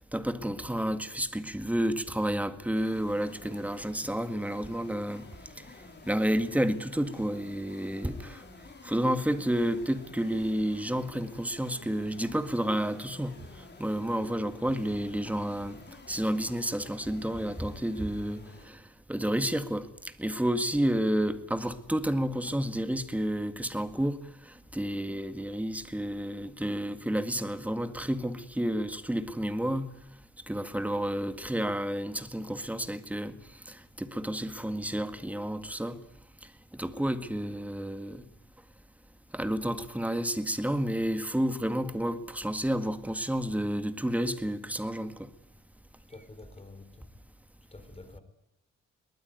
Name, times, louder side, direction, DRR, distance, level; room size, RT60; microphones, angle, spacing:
voice 1, 0.1-5.3 5.6-5.7 6.1-8.4 8.8-15.8 16.1-18.8 19.1-19.9 20.2-29.9 30.5-33.4 33.7-36.0 36.7-38.2 39.3-45.3, right 1 dB, 5° right, 1.9 m, -30 dB
sound 1, 2.7-18.8, left 4 dB, 35° left, 5.0 m, -51 dB
voice 2, 46.1-47.1 47.7-48.2, left 2 dB, 20° left, 4.1 m, -49 dB
22.5 x 19.5 x 9.3 m
cardioid pair, 120°, 29 cm